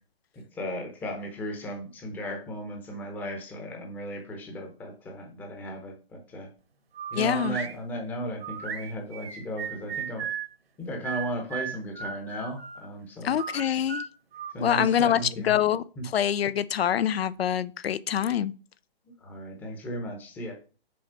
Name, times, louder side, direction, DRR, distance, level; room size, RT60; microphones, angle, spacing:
voice 1, 0.5-6.5 7.1-10.3 10.8-13.4 14.5-15.6 16.0-16.1 19.2-20.5, equal, 5° left, 0.7 m, -35 dB
sound 1, 6.9-7.8 8.4-10.5 11.0-12.9 13.4-15.2, right 7 dB, 70° right, 1.4 m, -36 dB
voice 2, 7.1-7.6 13.2-14.0 14.6-15.8 16.1-18.5, left 10 dB, 75° left, 0.5 m, -25 dB
6.3 x 4.1 x 5.7 m
hypercardioid pair, 160°, 31 cm